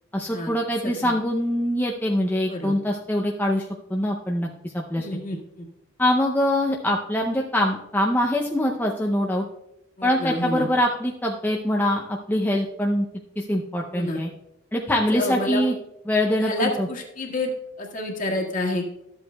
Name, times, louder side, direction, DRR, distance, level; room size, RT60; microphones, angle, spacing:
voice 1, 0.1-5.1 6.0-9.5 10.0-13.1 13.4-14.3 14.7-15.7 16.1-16.9, left 1 dB, 10° left, -1 dB, 0.5 m, -24 dB
voice 2, 4.9-5.3 10.0-10.7 13.9-14.2 14.9-15.6 16.4-17.5 17.8-19.0, left 2 dB, 40° left, 0 dB, 1.7 m, -28 dB
13.0 x 8.0 x 2.3 m, 0.85 s
head